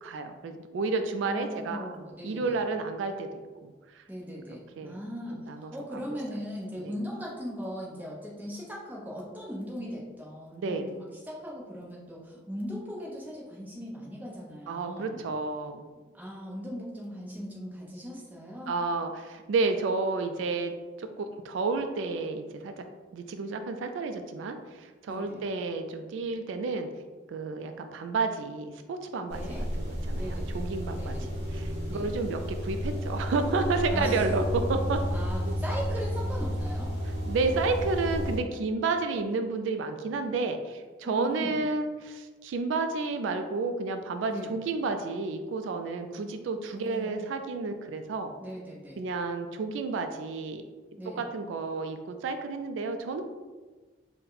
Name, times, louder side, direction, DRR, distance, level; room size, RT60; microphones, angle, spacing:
voice 1, 0.0-1.9 2.2-4.0 4.8-5.0 5.5-6.0 6.8-6.9 10.6-10.9 14.7-15.8 18.7-20.7 21.0-22.8 23.1-26.9 27.3-35.0 35.5-35.6 37.3-48.3 49.0-50.6 51.2-53.2, right 3 dB, 75° right, 7 dB, 0.3 m, -31 dB
voice 2, 1.2-2.6 4.1-15.3 16.1-18.7 25.1-25.4 29.3-29.6 30.1-30.7 30.9-31.3 31.9-32.1 33.9-34.2 35.1-36.9 41.0-41.6 44.3-44.6 46.7-47.1 48.4-49.0 51.0-51.2, equal, 10° right, -4 dB, 0.7 m, -39 dB
sound 1, 29.3-38.4, equal, 35° right, 0.9 m, -32 dB
4.2 x 2.1 x 3.9 m, 1.3 s
head